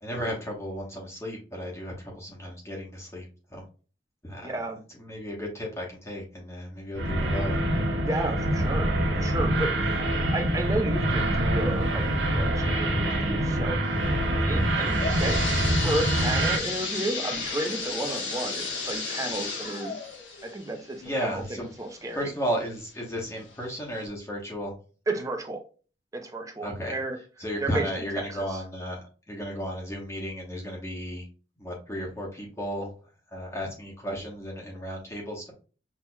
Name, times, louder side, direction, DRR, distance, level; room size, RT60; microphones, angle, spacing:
voice 1, 0.0-3.6 4.2-4.5 5.0-7.5 21.0-21.6 22.1-24.7 26.6-26.9 27.4-29.0 29.3-31.2 31.6-32.9 33.3-35.5, equal, 15° left, -2 dB, 1.1 m, -34 dB
voice 2, 4.4-4.8 8.0-10.1 10.3-12.1 12.3-13.8 14.4-19.9 20.4-22.3 25.1-25.6 26.1-27.2 27.6-27.9 28.3-28.6, right 2 dB, 20° right, 3 dB, 0.7 m, -32 dB
sound 1, 7.0-16.6, right 1 dB, 80° right, 1.1 m, -25 dB
sound 2, 14.6-22.2 22.7-22.8 23.5-23.6 24.0-24.1, left 4 dB, 90° left, 1.1 m, -33 dB
6.1 x 2.9 x 2.3 m, 0.36 s
head